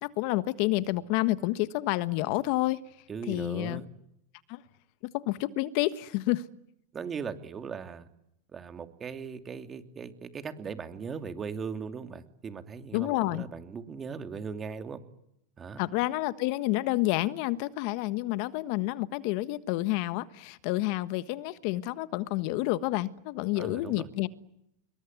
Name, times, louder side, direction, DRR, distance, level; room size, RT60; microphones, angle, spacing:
voice 1, 0.0-2.8 3.3-3.8 4.5-4.6 5.1-6.4 12.9-13.5 15.8-24.3, left 18 dB, 60° left, 14 dB, 1.4 m, -29 dB
voice 2, 3.1-3.9 6.9-8.1 8.5-15.0 15.6-15.8 23.5-24.1, right 6 dB, 25° right, 8 dB, 2.8 m, -38 dB
27.0 x 22.0 x 9.5 m, 0.79 s
supercardioid pair, 115°, 0 cm